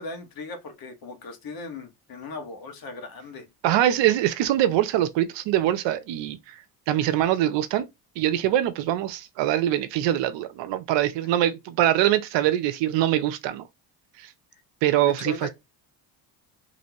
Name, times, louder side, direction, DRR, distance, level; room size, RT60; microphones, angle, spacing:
voice 1, 0.0-3.5 15.0-15.5, left 2 dB, 55° left, 1.7 m, -37 dB
voice 2, 3.6-6.4 6.9-7.8 8.2-13.6 14.8-15.5, right 12 dB, 75° right, 0.8 m, -23 dB
4.1 x 3.4 x 2.9 m
supercardioid pair, 80°, 44 cm